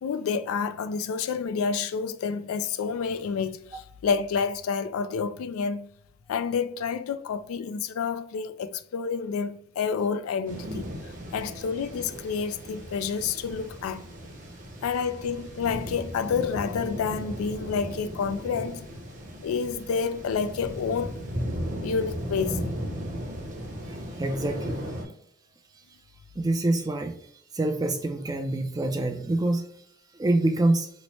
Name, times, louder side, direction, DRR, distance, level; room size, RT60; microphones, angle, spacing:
voice 1, 0.0-5.9 6.3-14.0 14.8-18.9 19.4-21.2 21.8-22.6, left 6 dB, 90° left, 0.3 m, -29 dB
sound 1, 10.5-25.1, equal, 40° right, 0.7 m, -36 dB
voice 2, 23.9-24.9 26.4-27.2 27.5-29.6 30.1-30.9, right 2 dB, 20° right, 0.3 m, -26 dB
3.1 x 2.1 x 4.0 m
head